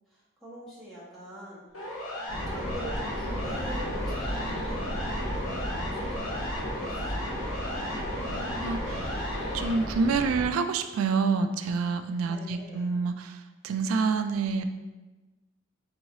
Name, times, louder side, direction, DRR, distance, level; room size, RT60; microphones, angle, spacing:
voice 1, 0.1-1.9 2.2-6.3 6.6-7.7 12.2-12.9, right 1 dB, ahead, -8 dB, 1.0 m, -44 dB
Siren, 1.7-9.7, left 1 dB, 85° left, 0.9 m, -36 dB
sound 1, 2.3-10.4, equal, 55° left, 1.4 m, -34 dB
voice 2, 8.3-9.1 9.5-14.7, right 4 dB, 80° right, 9 dB, 0.3 m, -28 dB
3.8 x 3.1 x 2.7 m, 1.2 s
head